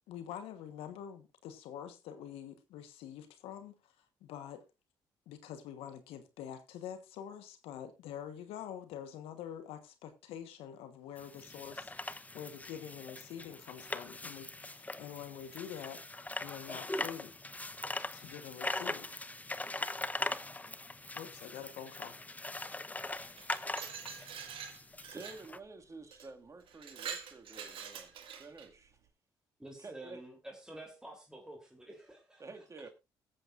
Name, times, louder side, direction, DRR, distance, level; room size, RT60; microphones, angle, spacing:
voice 1, 0.1-3.7 4.2-4.6 5.3-17.3 18.1-19.2 21.1-22.2, left 9 dB, 80° left, 1.3 m, -46 dB
sound 1, 11.2-25.6, left 2 dB, 15° left, 0.9 m, -41 dB
Glass, 23.2-25.5 26.1-26.3 26.7-28.7, right 7 dB, 65° right, 2.0 m, -45 dB
voice 2, 25.1-28.1 28.4-28.9 29.8-30.2 32.4-32.9, right 3 dB, 30° right, 2.1 m, -50 dB
voice 3, 29.6-32.9, right 1 dB, 5° right, 3.4 m, -50 dB
21.0 x 8.0 x 2.5 m
supercardioid pair, 55°, 10 cm